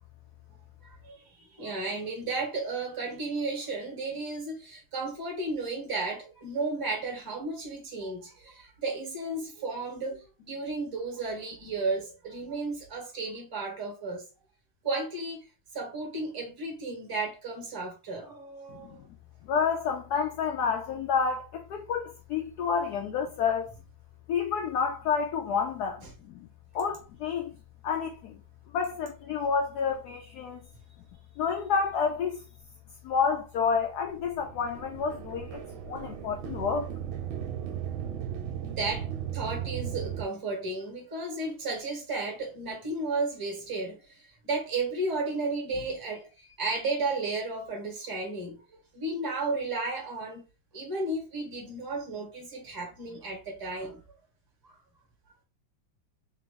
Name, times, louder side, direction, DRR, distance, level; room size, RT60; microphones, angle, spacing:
voice 1, 0.8-14.2 14.8-15.4 15.7-19.0 26.0-26.1 38.6-50.5 50.7-54.0 54.6-54.8, right 3 dB, 15° right, 1.1 m, -34 dB
voice 2, 18.7-19.0 19.4-23.7 24.3-26.5 26.7-27.5 27.8-28.4 28.7-30.6 31.4-32.4 33.0-36.9, left 6 dB, 70° left, 1.0 m, -29 dB
sound 1, 34.1-40.3, right 9 dB, 85° right, 1.4 m, -36 dB
3.7 x 2.8 x 3.6 m
omnidirectional pair, 2.1 m